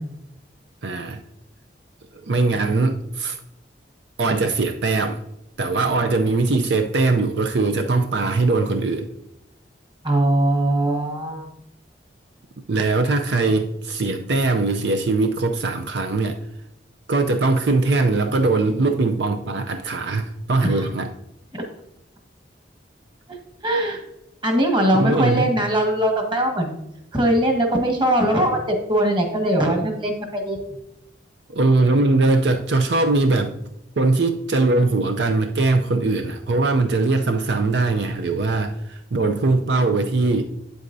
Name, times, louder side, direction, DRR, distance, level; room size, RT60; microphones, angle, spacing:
voice 1, 0.8-1.2 2.1-3.4 4.2-5.2 5.6-9.1 12.7-16.4 17.1-21.1 24.9-25.5 31.5-33.5 34.0-40.4, right 3 dB, 70° right, 6 dB, 0.5 m, -21 dB
voice 2, 10.0-11.5 20.6-20.9 21.5-21.6 23.6-24.0 24.4-26.7 27.1-30.6, right 1 dB, 25° right, 2 dB, 1.5 m, -21 dB
8.6 x 8.0 x 2.6 m, 0.82 s
head